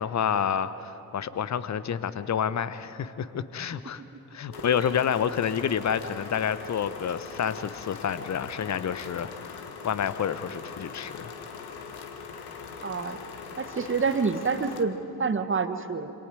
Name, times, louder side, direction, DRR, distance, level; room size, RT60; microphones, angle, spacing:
voice 1, 0.0-4.0 4.3-11.3, left 8 dB, 35° left, 14 dB, 1.0 m, -29 dB
sound 1, 4.5-14.8, left 5 dB, 55° left, 1.9 m, -41 dB
voice 2, 4.6-4.9 12.8-13.2 13.6-16.1, right 5 dB, 25° right, 9 dB, 1.5 m, -28 dB
27.5 x 26.5 x 4.8 m, 2.9 s
figure-of-eight pair, 45°, 47 cm